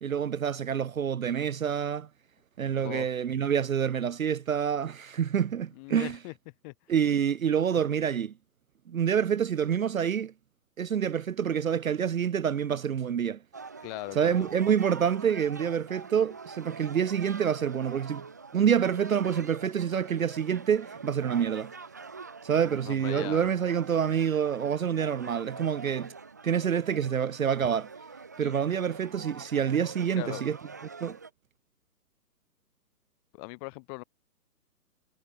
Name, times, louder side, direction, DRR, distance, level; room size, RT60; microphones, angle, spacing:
voice 1, 0.0-2.1 2.6-6.2 6.9-8.3 8.9-10.3 10.8-13.4 14.2-18.3 18.5-21.7 22.4-26.1 26.4-27.9 28.4-30.6 31.0-31.2, right 8 dB, 60° right, 0.7 m, -27 dB
voice 2, 2.8-3.2 5.7-6.3 6.6-6.7 13.8-14.5 22.7-23.5 28.4-28.5 30.1-30.4 33.3-34.0, left 32 dB, 25° left, 4.4 m, -39 dB
sound 1, 13.5-31.3, right 4 dB, 10° right, 0.5 m, -45 dB
figure-of-eight pair, 130°, 47 cm